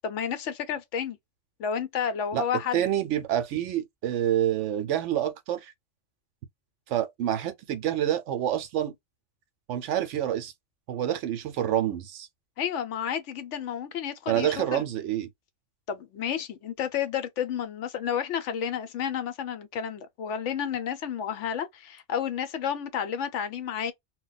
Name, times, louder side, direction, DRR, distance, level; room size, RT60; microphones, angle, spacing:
voice 1, 0.0-1.2 1.6-2.8 12.6-14.8 15.9-23.9, left 8 dB, 70° left, 0.9 m, -31 dB
voice 2, 2.7-5.7 6.9-8.9 9.7-10.5 10.9-12.3 14.3-15.3, right 11 dB, 70° right, 0.9 m, -27 dB
2.2 x 2.1 x 3.9 m
omnidirectional pair, 1.3 m